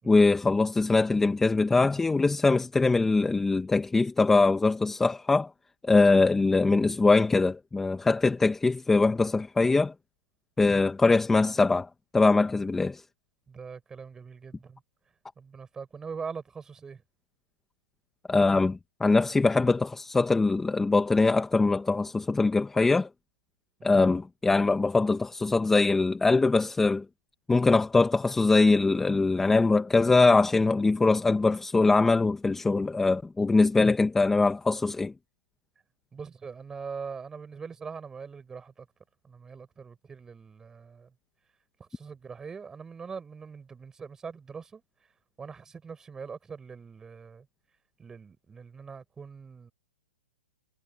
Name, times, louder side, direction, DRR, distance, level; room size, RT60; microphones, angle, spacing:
voice 1, 0.0-5.5 5.8-9.9 10.6-13.0 18.3-23.1 23.8-27.0 27.5-35.1, left 3 dB, 5° left, 1.4 m, -22 dB
voice 2, 13.5-14.8 15.4-17.0 23.8-24.0 36.1-38.9 39.2-41.1 41.8-44.8 45.4-47.5 48.0-49.7, right 5 dB, 10° right, 5.6 m, -42 dB
hypercardioid pair, 145°, 5 cm